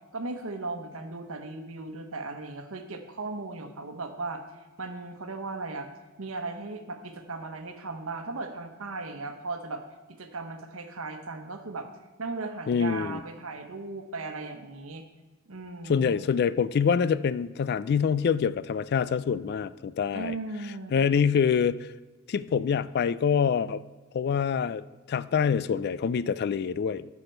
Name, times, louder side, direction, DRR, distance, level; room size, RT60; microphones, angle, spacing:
voice 1, 0.1-4.4 4.8-5.9 6.2-9.8 10.2-11.9 12.2-15.0 15.5-16.2 20.1-20.9, right 3 dB, 75° right, 6 dB, 1.1 m, -37 dB
voice 2, 12.7-13.2 15.9-20.4 20.9-21.8 22.3-23.8 24.1-27.1, left 6 dB, 50° left, 17 dB, 0.3 m, -25 dB
13.0 x 6.1 x 4.5 m, 1.2 s
head